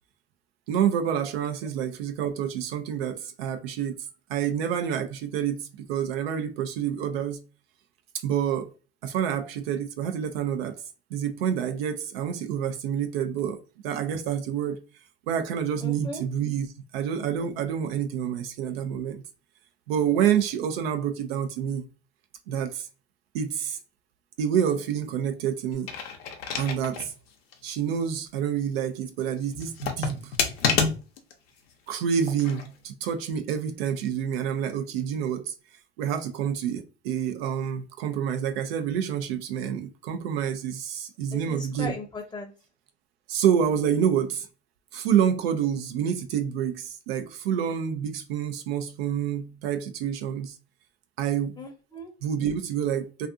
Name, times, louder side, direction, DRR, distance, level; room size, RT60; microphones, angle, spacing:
voice 1, 0.7-4.0 4.3-7.4 8.2-8.7 9.0-10.8 11.1-13.6 13.8-14.8 15.3-16.7 16.9-19.2 19.9-21.8 22.5-22.9 23.3-23.8 24.4-25.9 26.6-27.1 27.6-30.3 31.9-35.5 36.0-42.0 43.3-44.5 44.9-50.5 51.2-51.6 52.2-53.3, right 8 dB, 80° right, 0.5 m, -28 dB
voice 2, 15.8-16.2 41.3-42.5 51.6-52.1, left 2 dB, 15° left, 0.6 m, -38 dB
sound 1, 25.7-27.1 27.5-27.6 29.5-31.3 32.2-32.7, left 6 dB, 90° left, 0.6 m, -28 dB
2.4 x 2.4 x 2.5 m
hypercardioid pair, 75°, 30 cm